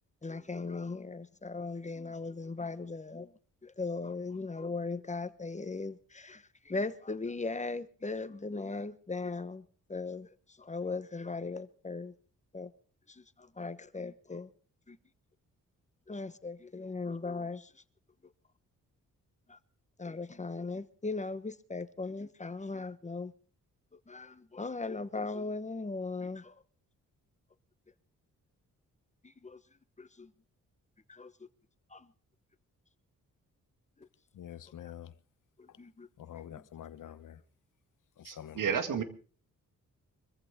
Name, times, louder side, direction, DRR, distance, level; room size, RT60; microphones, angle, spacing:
voice 1, 0.2-3.3 3.6-12.1 12.5-12.7 13.1-14.5 14.9-15.0 16.1-17.8 19.5-19.6 20.0-23.3 24.1-26.6 29.2-29.6 30.0-30.3 31.1-31.5 31.9-32.1 34.0-34.1 35.6-36.1 36.5-36.6, left 3 dB, 20° left, 1.2 m, -38 dB
voice 2, 34.3-35.1 35.7-35.8 36.2-37.4 38.2-39.0, left 10 dB, 75° left, 1.0 m, -47 dB
voice 3, 38.2-39.0, right 7 dB, 80° right, 2.1 m, -32 dB
24.5 x 14.5 x 3.7 m
cardioid pair, 90°, 32 cm